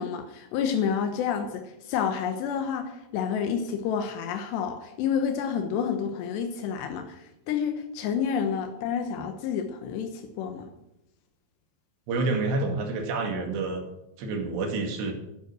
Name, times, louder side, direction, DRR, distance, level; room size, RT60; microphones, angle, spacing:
voice 1, 0.0-10.7, left 7 dB, 85° left, 6 dB, 3.3 m, -29 dB
voice 2, 12.1-13.8 14.2-15.1, right 3 dB, 85° right, 4 dB, 4.4 m, -28 dB
12.5 x 11.0 x 6.2 m, 0.88 s
omnidirectional pair, 4.8 m